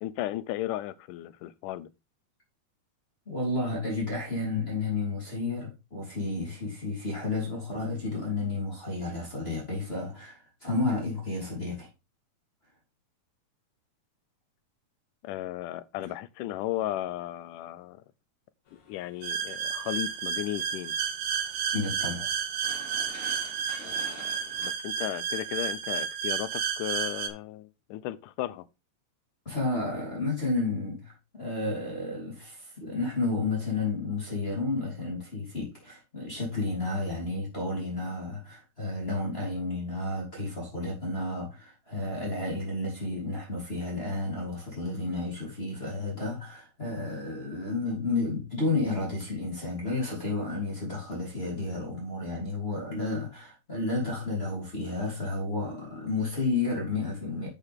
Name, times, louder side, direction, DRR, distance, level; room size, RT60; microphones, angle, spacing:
voice 1, 0.0-1.9 15.2-18.0 18.7-20.9 23.8-28.7, left 14 dB, 80° left, 2.2 m, -35 dB
voice 2, 3.3-11.9 16.0-16.1 21.7-22.3 29.5-57.5, left 3 dB, 20° left, 3.5 m, -31 dB
sound 1, 18.7-24.7, left 4 dB, 65° left, 3.6 m, -51 dB
sound 2, 19.2-27.3, right 7 dB, 90° right, 2.7 m, -31 dB
9.9 x 6.6 x 3.6 m
omnidirectional pair, 3.8 m